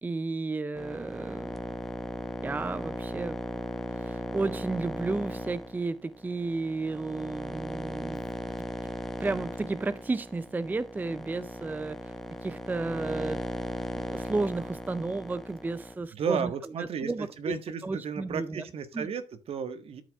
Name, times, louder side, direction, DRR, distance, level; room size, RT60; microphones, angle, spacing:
voice 1, 0.0-1.5 2.4-3.4 4.0-8.3 9.2-12.1 12.4-13.4 13.9-16.5 16.8-17.6 17.8-18.6 18.9-19.1, right 3 dB, 15° right, 0.4 m, -33 dB
sound 1, 0.7-15.9, equal, ahead, 1.1 m, -37 dB
voice 2, 16.1-20.0, right 6 dB, 60° right, 1.5 m, -33 dB
12.0 x 5.2 x 3.6 m
cardioid pair, 120°, 11 cm